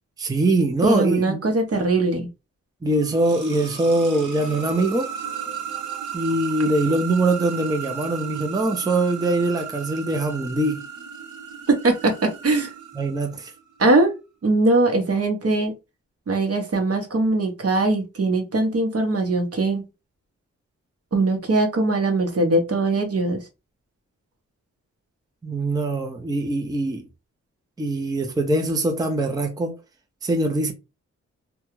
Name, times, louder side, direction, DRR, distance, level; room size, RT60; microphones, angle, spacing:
voice 1, 0.2-1.4 2.8-5.1 6.1-10.8 12.9-13.5 25.4-27.0 27.8-29.8 30.2-30.7, right 2 dB, 15° right, 0.5 m, -23 dB
voice 2, 0.8-2.3 11.7-12.7 13.8-14.2 14.4-15.7 16.3-19.8 21.1-23.4, right 2 dB, 55° right, 0.9 m, -21 dB
sound 1, 2.8-13.6, right 8 dB, 75° right, 0.9 m, -35 dB
2.3 x 2.3 x 3.0 m
cardioid pair, 60°, 30 cm